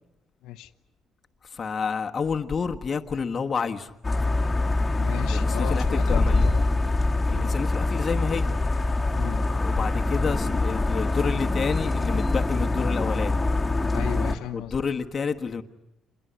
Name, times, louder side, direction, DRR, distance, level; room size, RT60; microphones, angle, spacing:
voice 1, 1.4-3.9 5.3-6.5 7.3-8.5 9.6-13.4 14.5-15.6, left 5 dB, 30° left, 1.4 m, -29 dB
sound 1, 4.0-14.3, left 2 dB, 10° left, 2.0 m, -24 dB
voice 2, 5.0-6.6 7.3-7.5 9.1-9.4 13.9-14.7, left 12 dB, 85° left, 1.0 m, -35 dB
27.5 x 22.0 x 9.5 m
cardioid pair, 130°, 0 cm